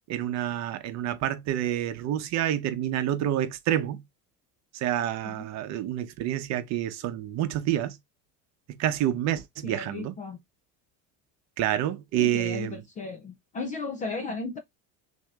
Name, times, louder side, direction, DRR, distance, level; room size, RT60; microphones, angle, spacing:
voice 1, 0.1-4.0 4.7-8.0 8.8-10.1 11.6-12.8, right 11 dB, 45° right, 0.9 m, -28 dB
voice 2, 9.6-10.4 12.1-14.6, left 3 dB, 20° left, 0.4 m, -35 dB
6.2 x 2.8 x 2.4 m
cardioid pair, 175°, 37 cm